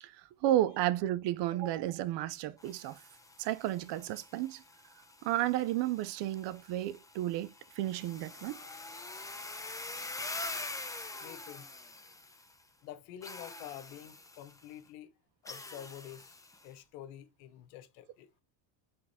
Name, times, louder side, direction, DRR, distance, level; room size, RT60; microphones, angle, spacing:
voice 1, 0.0-3.0 3.4-4.6 5.2-8.6, right 14 dB, 60° right, 0.7 m, -32 dB
sound 1, 2.6-12.6 13.2-14.6 15.5-16.7, left 2 dB, 5° left, 0.9 m, -45 dB
voice 2, 11.2-11.7 12.8-15.1 15.4-16.4 16.6-18.4, left 11 dB, 80° left, 1.3 m, -48 dB
6.3 x 3.8 x 4.2 m
supercardioid pair, 110°, 48 cm